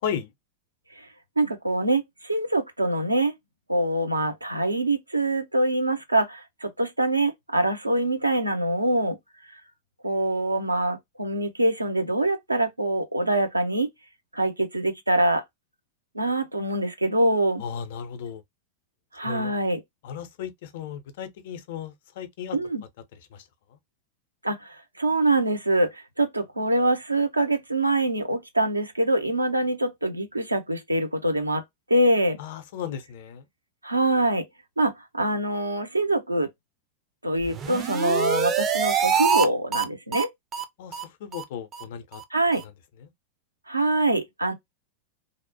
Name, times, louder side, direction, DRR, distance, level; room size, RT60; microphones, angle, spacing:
voice 1, 1.4-3.3 3.7-9.2 10.0-13.9 14.3-15.4 16.1-17.6 19.1-19.8 22.5-22.8 24.4-31.6 31.9-32.4 33.8-34.5 34.8-36.5 37.2-40.3 42.3-42.6 43.7-44.5, right 1 dB, 85° right, 0.6 m, -24 dB
voice 2, 17.6-18.4 19.2-19.5 20.0-22.6 23.1-23.4 23.7-23.8 32.4-33.5 40.8-42.2 43.0-43.1, left 8 dB, 55° left, 0.5 m, -35 dB
sound 1, 37.4-39.5 39.7-39.8 40.1-40.2 40.5-40.6 40.9-41.0 41.3-41.4 41.7-41.8 42.1-42.2 42.5-42.6, right 7 dB, 25° right, 0.4 m, -25 dB
2.7 x 2.0 x 2.7 m
figure-of-eight pair, 90°, 0 cm